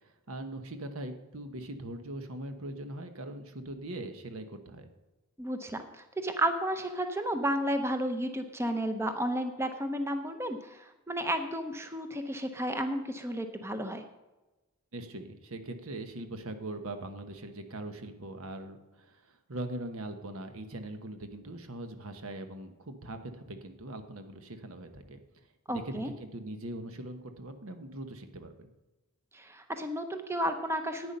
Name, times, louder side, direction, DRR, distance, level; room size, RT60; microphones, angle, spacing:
voice 1, 0.0-4.9 14.9-25.2 25.7-28.7, right 1 dB, 75° right, 7 dB, 1.1 m, -41 dB
voice 2, 5.4-14.0 25.7-26.1 29.3-31.2, right 1 dB, 10° right, 7 dB, 0.6 m, -32 dB
11.0 x 8.9 x 5.4 m, 1.1 s
head